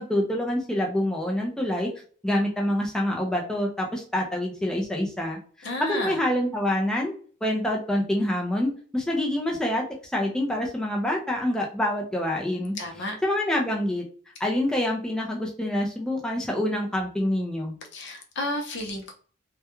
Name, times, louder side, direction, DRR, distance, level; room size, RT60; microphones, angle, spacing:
voice 1, 0.0-1.9 2.2-7.1 7.4-12.7 13.2-14.0 14.4-17.8, left 1 dB, 5° left, -1 dB, 0.4 m, -26 dB
voice 2, 5.6-6.2 12.8-13.2 17.9-19.1, left 1 dB, 60° left, 2 dB, 0.6 m, -32 dB
2.3 x 2.2 x 2.9 m, 0.42 s
head